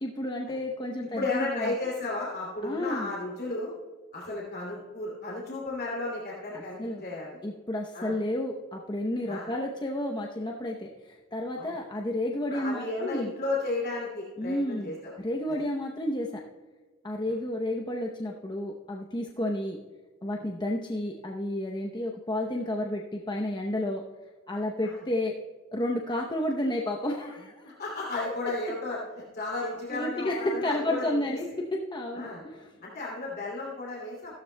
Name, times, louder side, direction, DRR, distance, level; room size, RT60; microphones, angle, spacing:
voice 1, 0.0-1.7 2.6-3.1 6.5-7.0 7.4-13.3 14.4-14.9 15.2-16.3 17.0-19.8 20.2-24.0 24.5-25.3 25.7-27.7 29.9-32.7, left 1 dB, 20° left, 0 dB, 0.7 m, -31 dB
voice 2, 1.0-3.7 4.1-7.4 7.9-8.1 9.3-9.5 11.6-11.8 12.5-15.1 15.5-15.6 17.3-17.4 19.4-19.5 24.8-25.0 27.6-29.0 29.3-31.4 32.1-32.4 32.8-34.4, left 2 dB, 45° left, -4 dB, 2.6 m, -34 dB
15.5 x 12.5 x 2.2 m, 1.4 s
head